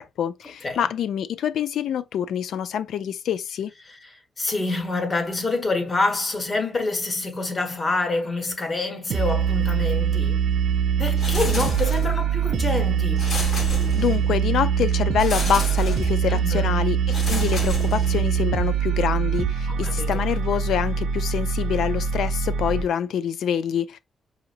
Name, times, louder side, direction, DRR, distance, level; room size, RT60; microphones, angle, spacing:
voice 1, 0.0-3.7 13.9-24.0, left 9 dB, 90° left, 0.4 m, -26 dB
voice 2, 4.4-10.5 11.0-13.3 16.3-16.7 19.7-20.3, left 3 dB, 35° left, 1.3 m, -27 dB
sound 1, 9.1-22.8, right 7 dB, 80° right, 0.4 m, -23 dB
sound 2, 11.2-12.3 13.2-14.4 15.2-16.2 17.1-18.4, left 1 dB, 70° left, 3.0 m, -31 dB
4.9 x 2.8 x 2.5 m
cardioid pair, 95°, 0 cm